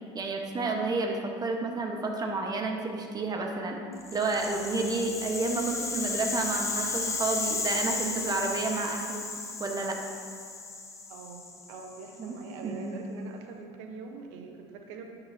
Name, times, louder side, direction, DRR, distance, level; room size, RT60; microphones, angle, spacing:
voice 1, 0.1-3.8 4.1-9.3 9.6-10.0 12.2-12.4 12.6-13.0, right 3 dB, 25° right, 2 dB, 1.1 m, -30 dB
Rattle (instrument), 4.0-12.2, left 3 dB, 20° left, 0.8 m, -34 dB
voice 2, 11.1-15.0, right 4 dB, 80° right, 3 dB, 1.0 m, -44 dB
10.5 x 5.7 x 2.7 m, 2.2 s
supercardioid pair, 95°, 14 cm